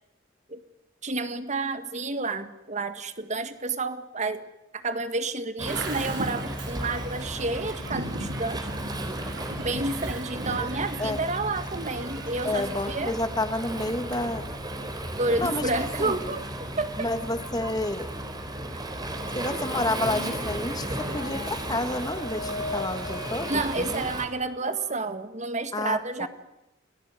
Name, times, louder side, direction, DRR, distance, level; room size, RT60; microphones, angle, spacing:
voice 1, 1.0-4.5 4.7-8.7 9.6-13.2 15.2-17.1 19.5-19.6 23.5-26.3, right 3 dB, 35° right, 10 dB, 1.8 m, -30 dB
Waves surf, 5.6-24.3, right 1 dB, 20° right, 3.6 m, -34 dB
Bird vocalization bird call bird song, 5.7-13.0, right 1 dB, 65° right, 4.8 m, -39 dB
voice 2, 12.4-14.5 15.4-15.7 16.0-16.2 17.0-18.1 19.3-23.5 23.8-24.1 25.7-26.3, left 2 dB, 20° left, 10 dB, 1.6 m, -30 dB
sound 1, 19.2-25.1, left 3 dB, 65° left, 2.9 m, -40 dB
29.5 x 19.0 x 9.7 m, 0.93 s
head